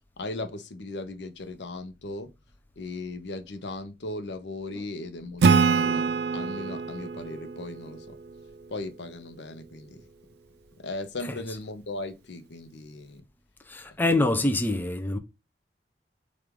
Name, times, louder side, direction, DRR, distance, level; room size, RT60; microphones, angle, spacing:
voice 1, 0.2-2.3 2.8-8.2 8.7-10.0 10.8-13.2 14.1-14.5, left 2 dB, 85° left, 0.6 m, -37 dB
Acoustic guitar / Strum, 5.4-8.9, right 5 dB, 70° right, 0.3 m, -25 dB
voice 2, 13.7-15.2, left 2 dB, 10° left, 0.3 m, -25 dB
4.6 x 2.4 x 3.5 m
head